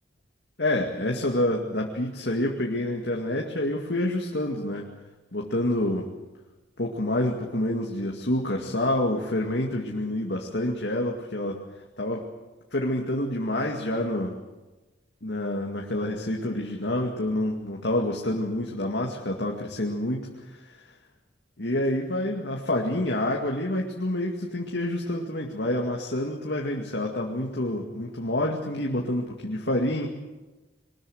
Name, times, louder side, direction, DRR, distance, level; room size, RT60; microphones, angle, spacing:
voice 1, 0.6-4.9 5.3-6.1 6.8-11.6 12.0-12.3 12.7-14.3 15.2-20.7 21.6-30.1, left 1 dB, 75° left, 0 dB, 2.2 m, -28 dB
23.0 x 20.0 x 8.0 m, 1.2 s
head